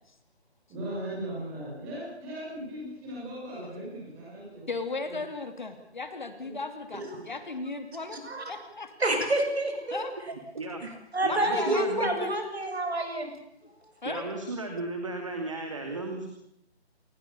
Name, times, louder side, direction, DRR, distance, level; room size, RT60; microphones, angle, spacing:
voice 1, 0.7-4.7 5.0-5.1 6.4-6.5, right 1 dB, 5° right, -7 dB, 6.3 m, -38 dB
voice 2, 4.7-8.2 8.5-8.9 9.9-10.1 11.3-12.5 14.0-14.3, left 3 dB, 45° left, 8 dB, 2.8 m, -35 dB
voice 3, 6.9-7.2 8.2-8.4 9.0-10.0 11.1-13.3, right 1 dB, 70° right, 4 dB, 7.9 m, -28 dB
voice 4, 10.3-10.9 11.2-12.2 14.0-16.3, right 2 dB, 30° right, 4 dB, 2.5 m, -35 dB
29.0 x 20.0 x 6.9 m, 0.77 s
figure-of-eight pair, 180°, 33 cm